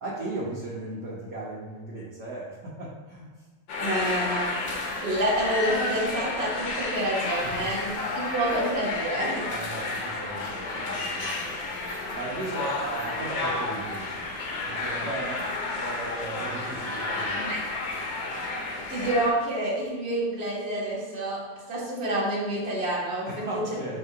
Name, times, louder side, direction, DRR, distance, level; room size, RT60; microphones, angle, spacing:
voice 1, 0.0-3.3 7.4-7.7 9.5-11.5 12.1-14.3 14.7-17.4 23.2-24.0, right 2 dB, 55° right, -7 dB, 1.5 m, -37 dB
sound 1, 3.7-19.3, left 2 dB, 60° left, 1.4 m, -31 dB
voice 2, 3.8-4.6 4.9-9.5 17.4-17.6 18.9-23.5, right 1 dB, 30° right, -5 dB, 1.6 m, -28 dB
5.0 x 3.4 x 5.5 m, 1.3 s
omnidirectional pair, 2.4 m